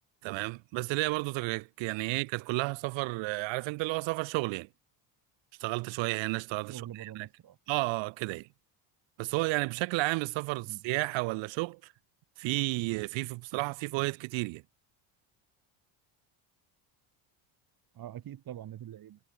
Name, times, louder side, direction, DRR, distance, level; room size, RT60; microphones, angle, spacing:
voice 1, 0.2-4.7 5.6-7.3 7.7-8.5 9.2-11.8 12.4-14.6, right 24 dB, 75° right, 1.2 m, -32 dB
voice 2, 6.7-7.6 10.6-10.9 17.9-19.2, right 11 dB, 50° right, 5.1 m, -44 dB
cardioid pair, 115°, 46 cm